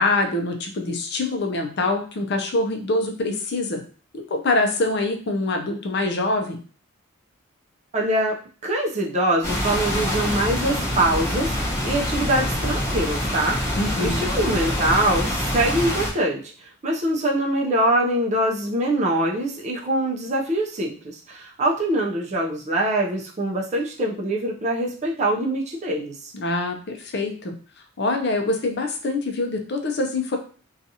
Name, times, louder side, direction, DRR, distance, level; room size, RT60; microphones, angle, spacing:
voice 1, 0.0-3.8 4.1-6.6 13.7-14.3 26.3-27.5 28.0-30.4, left 2 dB, 50° left, 4 dB, 0.5 m, -24 dB
voice 2, 7.9-13.6 14.0-26.3, right 1 dB, 30° right, -1 dB, 0.4 m, -24 dB
sound 1, 9.4-16.1, left 1 dB, 15° left, 0.8 m, -25 dB
2.7 x 2.3 x 2.7 m, 0.40 s
head